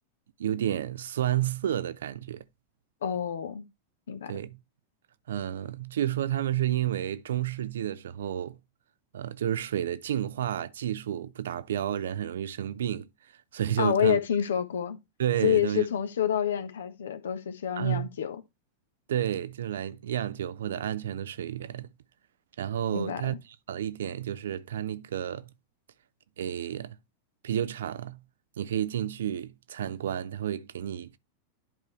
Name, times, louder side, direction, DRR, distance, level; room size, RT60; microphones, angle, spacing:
voice 1, 0.4-2.4 4.3-4.6 5.3-8.6 9.1-13.1 13.5-14.2 15.2-15.9 17.8-18.1 19.1-21.9 22.6-23.4 23.7-25.5 26.4-27.0 27.4-28.2 28.6-31.2, right 11 dB, 60° right, 0.6 m, -31 dB
voice 2, 3.0-3.6 4.1-4.3 13.8-15.0 15.4-18.4 22.9-23.4, left 9 dB, 65° left, 1.1 m, -28 dB
11.0 x 4.6 x 3.2 m
figure-of-eight pair, 90°, 0 cm